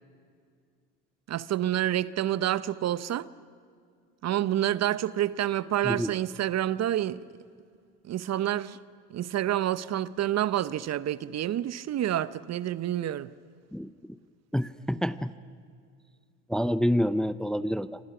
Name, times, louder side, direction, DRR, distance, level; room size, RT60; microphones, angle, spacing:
voice 1, 1.3-3.3 4.2-7.2 8.1-8.8 9.1-13.3, right 12 dB, 45° right, 0.8 m, -28 dB
voice 2, 14.5-15.3 16.5-18.0, equal, ahead, 0.7 m, -27 dB
28.0 x 24.5 x 6.0 m
hypercardioid pair, 70°, 37 cm